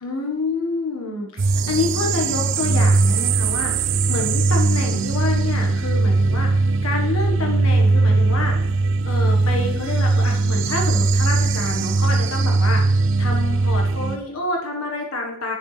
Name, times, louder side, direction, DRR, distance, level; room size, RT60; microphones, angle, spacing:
voice 1, 0.0-8.6 9.0-12.9 13.2-15.6, left 3 dB, 85° left, 1 dB, 1.5 m, -28 dB
sound 1, 1.4-14.2, right 3 dB, 65° right, 0.6 m, -19 dB
10.5 x 7.0 x 3.3 m, 0.80 s
head